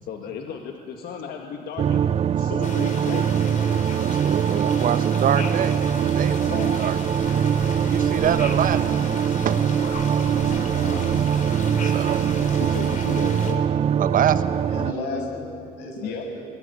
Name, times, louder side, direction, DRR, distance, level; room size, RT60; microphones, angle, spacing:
voice 1, 0.0-2.1 2.3-3.3 3.7-3.8 6.5-6.8 10.3-10.5 12.6-13.6 16.0-16.2, left 7 dB, 70° left, 3 dB, 1.9 m, -34 dB
sound 1, 1.8-14.9, right 8 dB, 35° right, 0.5 m, -22 dB
sound 2, 2.6-13.5, left 4 dB, 50° left, 3.6 m, -37 dB
voice 2, 4.0-7.0 7.7-9.9 10.8-11.0 11.8-12.3 14.0-14.4, right 9 dB, 55° right, 12 dB, 1.2 m, -26 dB
Walk footsteps, 6.0-12.4, left 2 dB, 30° left, 6.8 m, -42 dB
voice 3, 10.5-11.1 14.7-16.5, left 1 dB, 90° left, 2 dB, 6.4 m, -33 dB
22.5 x 20.0 x 9.8 m, 2.3 s
cardioid pair, 110°, 17 cm